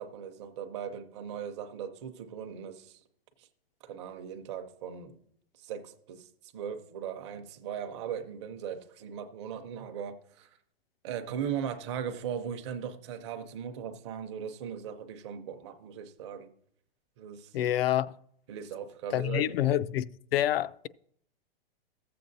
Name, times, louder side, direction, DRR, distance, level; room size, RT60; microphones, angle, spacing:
voice 1, 0.0-3.0 3.8-5.2 5.6-6.3 6.5-10.5 11.0-16.5 17.2-17.5 18.5-19.6, right 8 dB, 30° right, 0.6 m, -38 dB
voice 2, 17.5-18.1 19.1-20.9, left 12 dB, 75° left, 0.4 m, -27 dB
14.5 x 7.6 x 2.7 m
hypercardioid pair, 170°, 30 cm